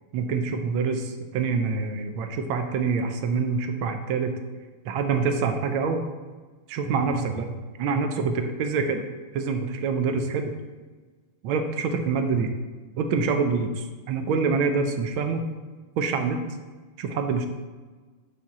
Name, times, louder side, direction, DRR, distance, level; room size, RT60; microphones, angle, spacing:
voice 1, 0.1-4.3 4.8-6.1 6.7-7.5 7.8-9.0 9.3-10.5 11.4-12.5 13.0-15.4 16.0-16.4 17.0-17.5, right 5 dB, 80° right, 6 dB, 1.4 m, -26 dB
7.6 x 4.2 x 3.6 m, 1.4 s
omnidirectional pair, 2.3 m